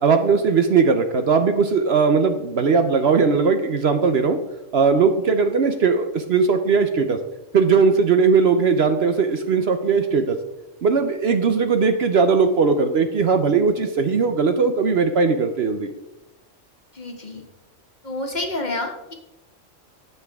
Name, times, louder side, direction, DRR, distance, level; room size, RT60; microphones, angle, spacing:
voice 1, 0.0-4.4 4.7-7.2 7.5-10.4 10.8-15.9, right 5 dB, 60° right, 7 dB, 0.9 m, -19 dB
voice 2, 16.9-17.4 18.0-19.1, left 2 dB, 35° left, 2 dB, 1.5 m, -29 dB
16.5 x 5.7 x 3.5 m, 0.93 s
omnidirectional pair, 1.4 m